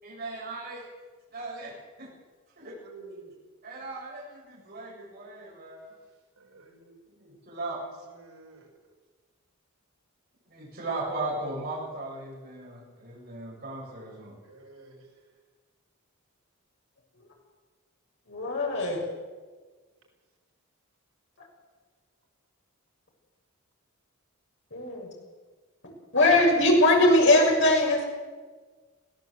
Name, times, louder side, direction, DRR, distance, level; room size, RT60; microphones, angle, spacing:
voice 1, 0.0-0.8 1.3-1.7 2.0-2.1 2.6-2.8 3.6-5.9 7.2-7.8 10.5-14.4, right 2 dB, 45° right, -3 dB, 7.6 m, -37 dB
voice 2, 2.8-3.3 4.8-4.9 6.4-6.9 7.7-8.7 14.0-15.1, right 3 dB, 75° right, 0 dB, 5.8 m, -51 dB
voice 3, 18.3-19.0 24.7-25.1 26.1-28.1, left 1 dB, 55° left, -1 dB, 6.8 m, -21 dB
21.0 x 16.5 x 8.2 m, 1.4 s
head